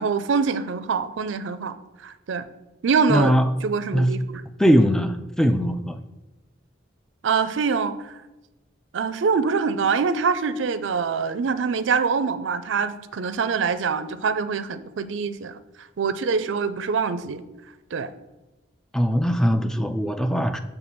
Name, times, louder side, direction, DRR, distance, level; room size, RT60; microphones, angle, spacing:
voice 1, 0.0-2.4 2.8-4.2 7.2-8.2 8.9-15.6 16.0-17.4 17.9-18.1, right 5 dB, 75° right, 13 dB, 0.4 m, -24 dB
voice 2, 3.1-3.4 3.9-4.1 4.6-6.0 18.9-20.6, equal, 5° left, 9 dB, 0.3 m, -20 dB
7.2 x 3.3 x 6.1 m, 1.0 s
head